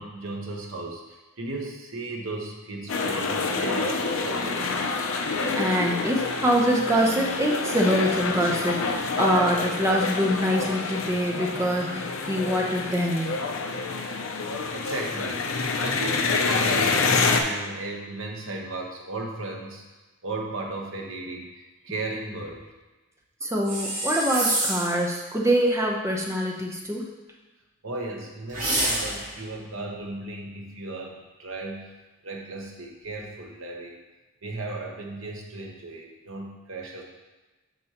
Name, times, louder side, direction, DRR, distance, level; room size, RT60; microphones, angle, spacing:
voice 1, 0.0-4.9 14.7-15.5 15.8-19.8 20.2-22.7 27.8-31.9 32.2-34.0 34.4-37.0, right 2 dB, 70° right, 0 dB, 1.1 m, -35 dB
sound 1, 2.9-17.4, left 4 dB, 70° left, 0.6 m, -27 dB
voice 2, 5.6-13.4 23.4-27.1, equal, 15° right, -1 dB, 0.8 m, -24 dB
sound 2, 23.6-25.0 28.5-29.4, right 1 dB, 40° right, 2.0 m, -27 dB
7.7 x 5.3 x 3.0 m, 1.2 s
head